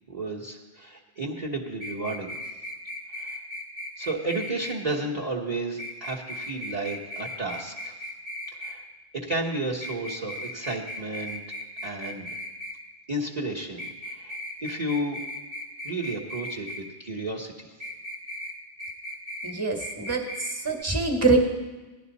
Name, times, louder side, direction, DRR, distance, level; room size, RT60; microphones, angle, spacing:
voice 1, 0.1-2.3 3.2-3.4 4.0-8.0 8.6-8.8 9.1-12.3 13.1-15.2 15.8-17.7, right 2 dB, 40° right, -1 dB, 1.4 m, -32 dB
sound 1, 1.8-4.8 5.8-8.8 9.8-12.8 13.8-16.8 17.8-18.5 18.8-19.5 19.8-20.5 20.8-20.9, left 1 dB, 85° right, 2.6 m, -37 dB
voice 2, 19.4-21.4, right 4 dB, 15° right, 1 dB, 1.6 m, -25 dB
17.0 x 11.0 x 4.1 m, 1.2 s
omnidirectional pair, 1.1 m